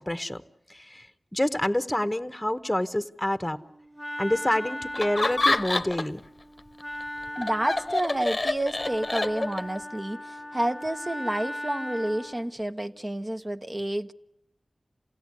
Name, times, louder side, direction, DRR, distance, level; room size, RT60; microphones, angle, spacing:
voice 1, 0.1-0.4 0.7-1.1 1.3-3.6 4.2-6.2, left 1 dB, 10° left, 10 dB, 1.0 m, -27 dB
Wind instrument woodwind instrument, 3.4-12.5, left 1 dB, 5° right, 1.6 m, -38 dB
Laughter, 4.9-6.2 6.6-9.8, left 2 dB, 40° left, 0.9 m, -27 dB
voice 2, 7.3-14.1, right 1 dB, 30° right, 6 dB, 0.9 m, -30 dB
28.0 x 17.0 x 9.7 m, 0.82 s
wide cardioid pair, 60°, 0 cm